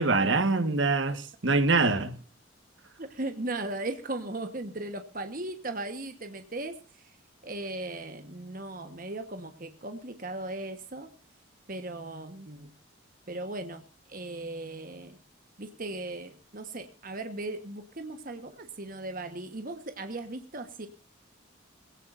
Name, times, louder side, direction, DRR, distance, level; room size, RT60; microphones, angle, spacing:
voice 1, 0.0-2.2, right 3 dB, 65° right, 1.5 m, -24 dB
voice 2, 3.0-7.1 7.4-11.1 11.7-12.7 13.3-13.8 14.1-15.2 15.6-20.9, right 2 dB, 45° right, 1.3 m, -37 dB
21.5 x 17.0 x 2.6 m
head